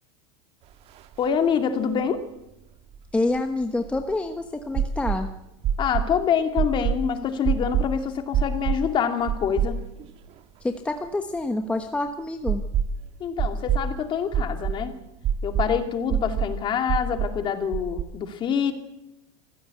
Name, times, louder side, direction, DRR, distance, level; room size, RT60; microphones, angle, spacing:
sound 1, 1.0-1.1 1.3-1.4 2.9-4.2 4.7-5.2 5.6-6.1 6.6-7.0 7.4-7.9 8.3-8.8 9.3-10.0 10.4-10.5 12.5-13.0 13.4-13.9 14.3-14.8 15.2-15.7 16.1-16.5 16.9-17.3 17.7-18.0, right 8 dB, 40° right, 1.8 m, -25 dB
voice 1, 1.2-2.2 5.8-9.8 13.2-14.9 15.4-18.7, left 7 dB, 30° left, 6 dB, 2.5 m, -25 dB
voice 2, 3.1-5.3 10.6-12.6, left 2 dB, 5° left, 5 dB, 1.2 m, -27 dB
25.0 x 16.0 x 8.3 m, 0.89 s
supercardioid pair, 140°, 16 cm